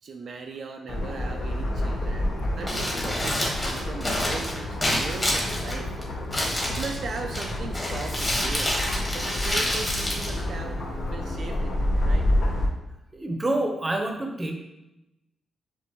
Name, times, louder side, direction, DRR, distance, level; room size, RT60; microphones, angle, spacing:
voice 1, 0.0-5.9 6.7-8.8 9.1-10.8 11.1-12.3, right 4 dB, 65° right, 3 dB, 0.3 m, -38 dB
sound 1, 0.9-12.7, left 1 dB, 60° left, 0.8 m, -29 dB
Crumpling crinkling, 2.5-11.1, left 1 dB, 20° left, 1.3 m, -29 dB
voice 2, 13.1-14.5, right 1 dB, 25° right, 3 dB, 0.7 m, -27 dB
6.7 x 2.5 x 3.0 m, 0.95 s
cardioid pair, 90°, 0 cm